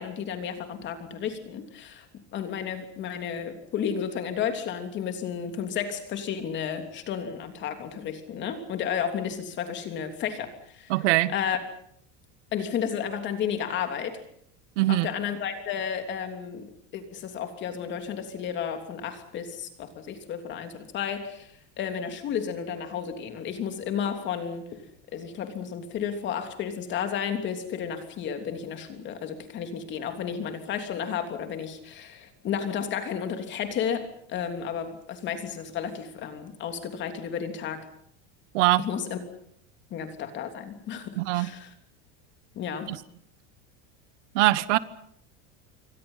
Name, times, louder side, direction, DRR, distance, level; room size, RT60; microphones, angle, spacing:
voice 1, 0.0-10.9 11.3-11.6 12.5-14.2 14.9-24.8 25.1-37.8 38.8-39.2 39.9-41.7 42.5-42.9, left 8 dB, 30° left, 3.2 m, -32 dB
voice 2, 10.9-11.3 14.8-15.1 38.5-38.8 41.2-41.5 42.9-43.0 44.3-44.8, right 18 dB, 75° right, 1.3 m, -22 dB
27.5 x 24.0 x 5.7 m
cardioid pair, 175°, 36 cm